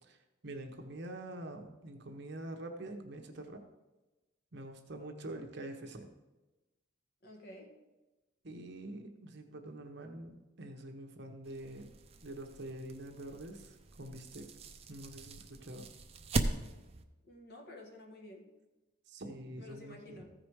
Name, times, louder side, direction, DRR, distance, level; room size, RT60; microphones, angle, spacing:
voice 1, 0.4-3.6 4.5-6.1 8.4-11.9 12.2-14.5 14.9-15.9 19.1-20.2, right 1 dB, 55° right, 4 dB, 1.1 m, -45 dB
voice 2, 7.2-7.8 17.2-18.5 19.6-20.3, left 1 dB, 55° left, 2 dB, 1.6 m, -51 dB
sound 1, 11.4-17.0, right 2 dB, 30° right, 0.6 m, -40 dB
14.5 x 5.1 x 4.7 m, 1.1 s
head